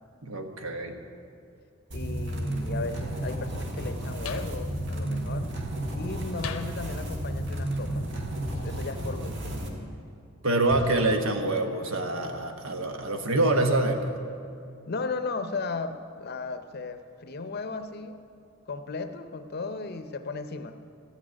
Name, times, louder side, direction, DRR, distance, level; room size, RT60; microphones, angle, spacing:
voice 1, 0.2-1.0 10.4-14.1, right 2 dB, 75° right, 5 dB, 1.2 m, -26 dB
voice 2, 1.9-5.5 5.9-8.1 8.6-10.0 14.9-18.2 18.7-20.8, left 3 dB, 50° left, 9 dB, 0.6 m, -36 dB
sound 1, 1.9-9.7, right 1 dB, 55° right, 1.5 m, -32 dB
sound 2, 4.2-4.6 6.4-6.8 8.5-9.5 10.7-11.6, left 5 dB, 85° left, 0.7 m, -41 dB
13.5 x 6.3 x 8.9 m, 2.5 s
head